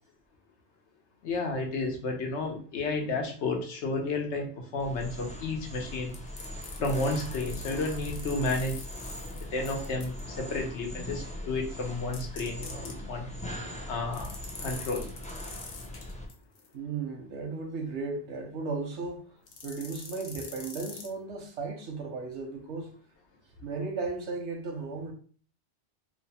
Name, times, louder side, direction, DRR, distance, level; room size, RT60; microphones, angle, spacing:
voice 1, 1.2-6.1 6.8-8.8 9.5-13.3 13.9-14.4 14.6-15.1, left 3 dB, 85° left, 1.1 m, -32 dB
sound 1, 4.8-16.2, left 1 dB, 10° left, 0.3 m, -40 dB
sound 2, 6.1-10.2 12.1-12.9 14.1-16.7 19.5-21.1, left 4 dB, 65° left, 0.9 m, -44 dB
voice 2, 16.7-19.3 19.6-22.9 23.6-25.1, right 4 dB, 90° right, 1.0 m, -35 dB
3.0 x 2.2 x 4.1 m
omnidirectional pair, 1.1 m